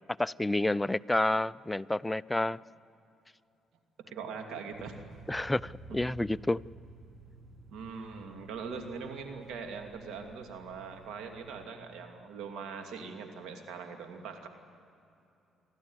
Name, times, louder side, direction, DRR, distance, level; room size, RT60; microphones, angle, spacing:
voice 1, 0.2-2.6 5.3-6.6, left 1 dB, 10° left, 16 dB, 0.4 m, -29 dB
voice 2, 4.1-5.0 5.9-6.0 7.7-14.5, right 5 dB, 80° right, 4 dB, 2.6 m, -42 dB
sound 1, 4.7-11.7, right 2 dB, 55° right, 6.3 m, -52 dB
29.0 x 12.5 x 9.7 m, 2.8 s
cardioid pair, 75°, 0 cm